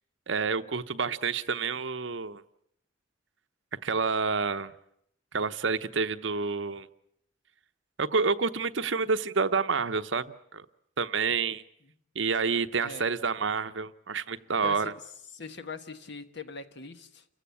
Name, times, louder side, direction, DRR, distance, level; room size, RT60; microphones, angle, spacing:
voice 1, 0.3-2.4 3.8-4.7 5.3-6.9 8.0-10.2 10.5-10.7 11.0-11.6 12.1-14.9, right 4 dB, 70° right, 0.9 m, -28 dB
voice 2, 12.8-13.1 14.6-15.0 15.3-17.3, left 4 dB, 65° left, 1.4 m, -41 dB
29.5 x 16.0 x 8.3 m
head